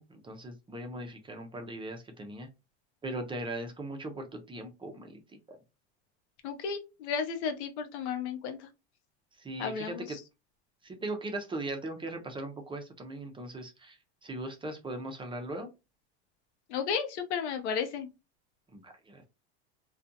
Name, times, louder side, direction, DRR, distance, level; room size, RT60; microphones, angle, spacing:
voice 1, 0.0-2.5 3.0-5.2 5.5-5.6 9.4-10.2 10.8-15.7 18.7-19.2, right 2 dB, 15° right, 0.5 m, -39 dB
voice 2, 6.4-8.7 9.6-10.2 16.7-18.1, left 6 dB, 80° left, 0.7 m, -33 dB
2.5 x 2.3 x 2.5 m
supercardioid pair, 105°, 33 cm